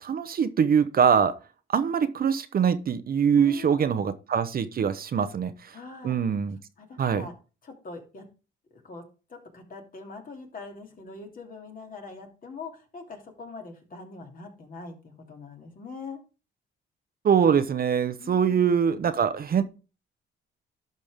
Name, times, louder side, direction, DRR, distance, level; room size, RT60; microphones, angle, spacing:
voice 1, 0.0-1.4 1.7-5.7 6.0-6.6 7.0-7.3 17.2-19.6, right 7 dB, 50° right, 0.8 m, -23 dB
voice 2, 3.4-4.0 5.2-5.3 5.7-6.2 6.8-7.3 7.6-8.2 8.7-9.0 9.3-16.2 18.2-18.6, left 4 dB, 45° left, 2.9 m, -43 dB
11.5 x 5.3 x 3.6 m
cardioid pair, 90°, 20 cm